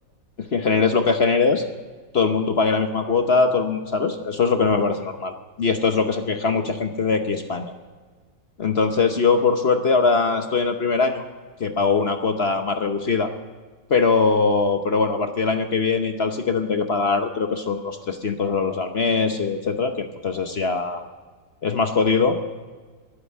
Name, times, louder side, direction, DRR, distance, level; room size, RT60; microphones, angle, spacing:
voice 1, 0.4-1.6 2.1-7.7 8.6-11.2 11.6-13.3 13.9-21.0 21.6-22.4, left 4 dB, 45° left, 7 dB, 0.8 m, -21 dB
12.0 x 11.5 x 8.7 m, 1.4 s
omnidirectional pair, 2.0 m